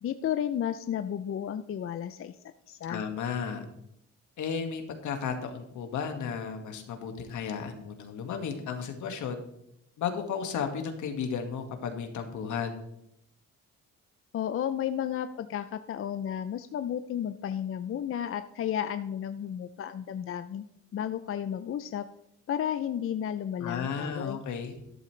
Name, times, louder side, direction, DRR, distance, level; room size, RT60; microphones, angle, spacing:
voice 1, 0.0-2.4 2.7-3.0 14.3-20.6 20.9-22.1 22.5-24.4, left 9 dB, 45° left, 11 dB, 0.5 m, -33 dB
voice 2, 2.9-3.7 4.4-9.4 10.0-12.8 23.6-24.7, left 6 dB, 75° left, 5 dB, 1.9 m, -34 dB
13.0 x 11.5 x 3.3 m, 0.77 s
cardioid pair, 90°, 30 cm